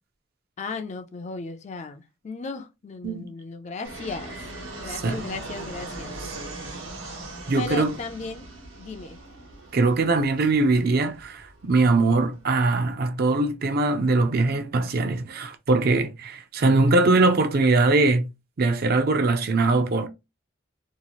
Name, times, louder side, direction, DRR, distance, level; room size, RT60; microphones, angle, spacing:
voice 1, 0.6-4.5 4.8-6.1 7.6-8.5 8.8-9.2 16.6-17.4, left 4 dB, 35° left, 0.4 m, -36 dB
Fixed-wing aircraft airplane, 3.8-12.9, right 2 dB, 80° right, 1.2 m, -40 dB
voice 2, 7.5-8.0 9.7-18.3 18.6-20.1, right 3 dB, 50° right, 0.5 m, -21 dB
2.9 x 2.3 x 2.9 m
head